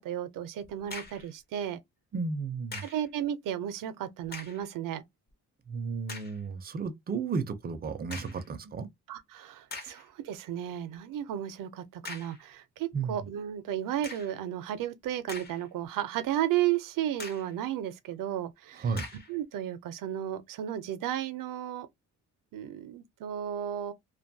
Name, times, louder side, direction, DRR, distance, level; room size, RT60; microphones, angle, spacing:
voice 1, 0.0-1.8 2.8-5.0 9.1-18.9 19.3-21.9 22.5-23.9, right 11 dB, 90° right, 0.5 m, -33 dB
sound 1, 0.6-1.3 2.7-3.1 4.2-4.7 5.3-5.4 6.1-6.4 8.1-8.5 9.2-9.3 9.7-10.1 12.0-12.4 14.0-14.4 15.0-15.9 16.2-16.3 17.2-17.6 19.0-19.4, left 3 dB, 30° left, 0.6 m, -43 dB
voice 2, 2.1-2.8 5.7-8.9 12.9-13.2 18.8-19.1, right 5 dB, 30° right, 0.4 m, -33 dB
2.5 x 2.2 x 2.6 m
cardioid pair, 160°, 32 cm